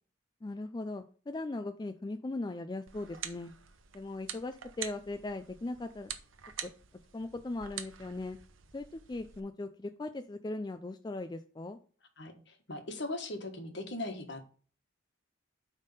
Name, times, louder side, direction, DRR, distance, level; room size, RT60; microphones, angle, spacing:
voice 1, 0.4-3.5 3.9-6.1 6.6-6.7 7.1-8.4 8.7-11.8, left 2 dB, 20° left, 7 dB, 0.4 m, -39 dB
sound 1, 2.9-9.4, right 9 dB, 80° right, 0.8 m, -46 dB
voice 2, 12.2-14.4, left 2 dB, 60° left, 6 dB, 1.5 m, -39 dB
9.1 x 3.6 x 5.5 m, 0.41 s
head